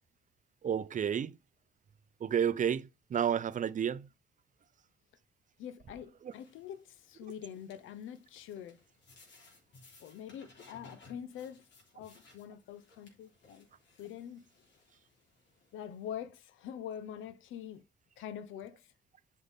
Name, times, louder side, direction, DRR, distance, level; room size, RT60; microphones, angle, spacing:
voice 1, 0.6-1.4 2.2-4.1 6.2-6.3, right 8 dB, 40° right, 0.5 m, -31 dB
voice 2, 5.6-8.8 10.0-11.6 11.9-13.7 14.0-14.4 15.7-17.8 18.2-18.9, left 9 dB, 85° left, 0.8 m, -45 dB
sound 1, 6.3-16.1, left 3 dB, 65° left, 3.4 m, -61 dB
8.2 x 5.4 x 3.5 m
cardioid pair, 90°, 20 cm